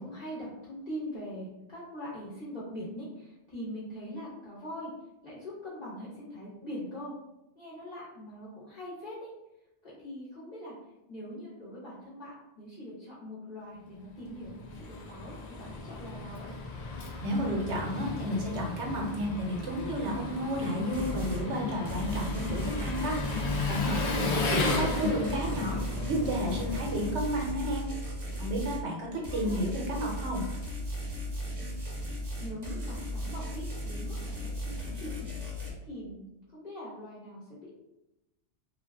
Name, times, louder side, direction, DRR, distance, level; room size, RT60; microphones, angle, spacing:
voice 1, 0.0-4.9 5.2-7.1 7.5-9.3 9.8-10.8 11.1-16.5 29.1-29.6 32.0-32.1 32.4-35.3 35.8-36.2 36.5-37.7, equal, 40° left, -9 dB, 0.9 m, -42 dB
Engine, 14.2-27.7, left 3 dB, 55° left, 0.4 m, -34 dB
voice 2, 17.2-23.2 23.7-25.8 26.1-27.8 28.4-30.4, equal, 75° right, -1 dB, 1.1 m, -32 dB
sound 1, 20.9-21.5 21.8-28.8 29.2-35.7, equal, 40° right, 0.8 m, -36 dB
2.5 x 2.3 x 3.3 m, 0.91 s
omnidirectional pair, 1.2 m